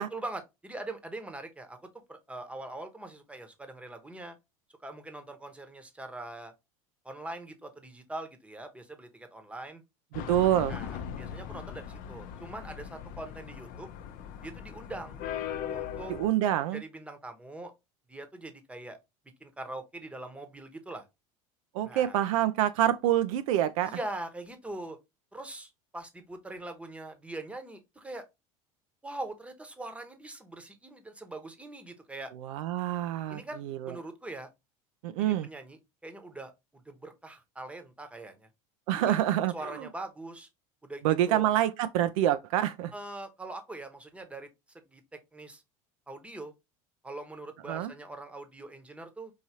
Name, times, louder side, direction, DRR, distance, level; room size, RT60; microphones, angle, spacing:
voice 1, 0.0-1.8 2.1-4.4 4.8-6.5 7.0-9.8 10.7-13.9 14.4-15.2 15.7-16.1 16.7-17.7 18.1-19.0 19.4-21.0 21.8-22.2 23.8-25.0 25.3-28.2 29.0-32.3 33.3-33.6 33.9-34.5 35.2-36.5 36.8-38.5 38.9-39.2 39.5-40.5 40.8-41.5 42.9-45.0 45.3-45.6 46.1-46.5 47.0-49.3, right 2 dB, 5° right, 0.9 m, -42 dB
sound 1, 10.1-16.3, left 9 dB, 55° left, 0.6 m, -39 dB
voice 2, 10.3-10.8 16.1-16.8 21.7-24.0 32.4-34.0 35.0-35.5 38.9-39.5 41.0-42.9 47.7-47.9, right 12 dB, 75° right, 0.4 m, -26 dB
4.7 x 2.7 x 2.8 m
hypercardioid pair, 90°, 18 cm